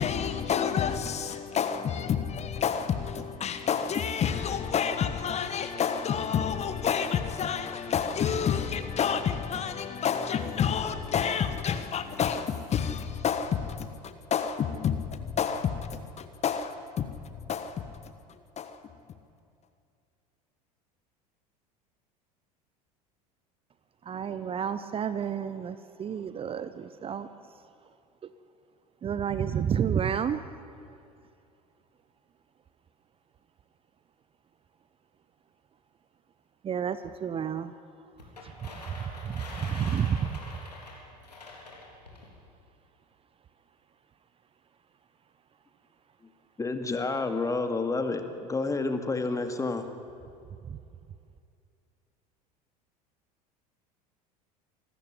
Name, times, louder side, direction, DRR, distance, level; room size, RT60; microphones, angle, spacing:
voice 1, 0.0-17.1 17.5-17.8 18.6-18.8, left 7 dB, 35° left, 1.3 m, -29 dB
voice 2, 24.0-27.3 28.2-28.3 29.0-30.4 36.6-37.7 38.4-38.7 39.0-40.4 50.7-50.8, right 8 dB, 25° right, 0.8 m, -30 dB
sound 1, 38.2-42.3, left 3 dB, 85° left, 3.8 m, -45 dB
voice 3, 46.6-49.9, left 3 dB, 15° left, 2.2 m, -29 dB
25.0 x 13.5 x 9.9 m
figure-of-eight pair, 75°, 20 cm